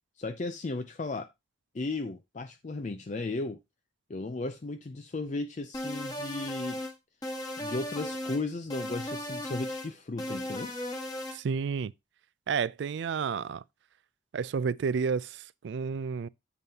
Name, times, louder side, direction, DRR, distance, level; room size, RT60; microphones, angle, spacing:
voice 1, 0.2-1.3 1.7-3.6 4.1-6.8 7.6-10.7, left 3 dB, 40° left, 0.4 m, -35 dB
sound 1, 5.7-6.9 7.2-8.4 8.7-9.9 10.2-11.4, left 1 dB, 20° left, 1.5 m, -36 dB
voice 2, 11.3-11.9 12.5-13.6 14.3-16.3, right 6 dB, 65° right, 0.3 m, -31 dB
8.6 x 6.9 x 2.8 m
head